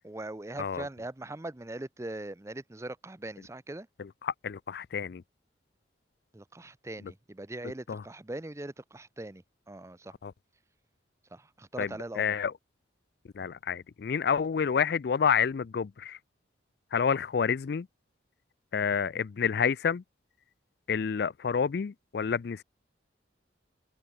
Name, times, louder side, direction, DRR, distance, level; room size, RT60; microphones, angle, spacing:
voice 1, 0.0-3.9 6.3-10.1 11.3-12.4, right 2 dB, 15° right, 0.5 m, -41 dB
voice 2, 4.0-5.2 7.9-8.0 10.2-10.3 11.8-11.9 12.2-12.5 13.3-16.2 16.9-17.9 18.7-20.0 20.9-22.6, left 6 dB, 55° left, 0.4 m, -29 dB
open air
head